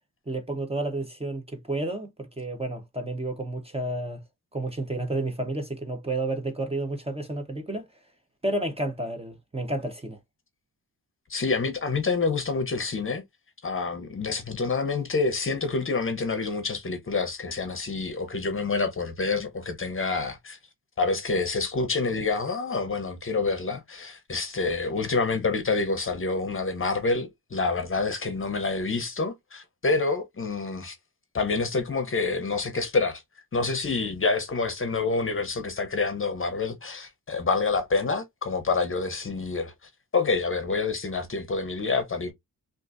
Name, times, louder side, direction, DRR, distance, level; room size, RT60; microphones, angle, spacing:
voice 1, 0.3-4.2 4.5-7.9 8.4-10.2, right 2 dB, 15° right, 0.7 m, -31 dB
voice 2, 11.3-13.2 13.6-20.6 21.0-31.0 31.3-33.2 33.5-42.3, left 4 dB, 35° left, 0.8 m, -27 dB
3.7 x 2.6 x 2.4 m
wide cardioid pair, 130°, 37 cm